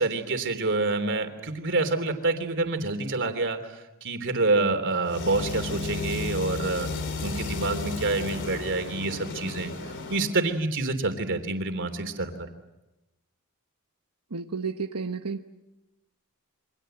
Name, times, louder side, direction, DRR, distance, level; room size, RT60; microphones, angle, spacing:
voice 1, 0.0-6.9 7.2-9.7 10.1-12.3, right 3 dB, 60° right, 7 dB, 3.3 m, -27 dB
sound 1, 5.0-10.4, left 3 dB, 55° left, 3.6 m, -33 dB
voice 2, 14.3-15.4, right 5 dB, 90° right, 5 dB, 1.1 m, -32 dB
28.5 x 25.0 x 7.9 m, 1.0 s
head